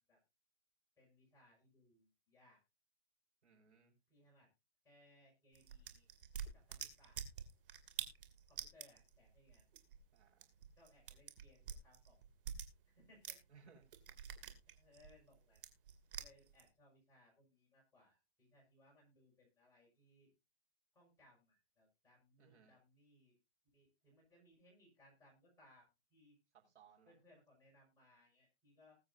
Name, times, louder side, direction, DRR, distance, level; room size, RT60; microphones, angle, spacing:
voice 1, 1.0-2.6 4.1-4.5 4.8-6.1 6.5-7.2 8.5-9.6 10.7-12.2 12.8-13.4 14.4-15.6 16.2-20.3 20.9-23.3 23.7-26.4 27.1-29.0, left 1 dB, 10° left, -4 dB, 5.8 m, -68 dB
voice 2, 3.4-3.9 10.1-10.5 13.5-13.8 22.4-22.7 26.6-27.1, right 6 dB, 85° right, -4 dB, 5.7 m, -65 dB
sound 1, 5.5-13.5 13.8-16.7, right 8 dB, 50° right, 2.5 m, -48 dB
20.5 x 7.9 x 2.7 m, 0.27 s
hypercardioid pair, 160°, 34 cm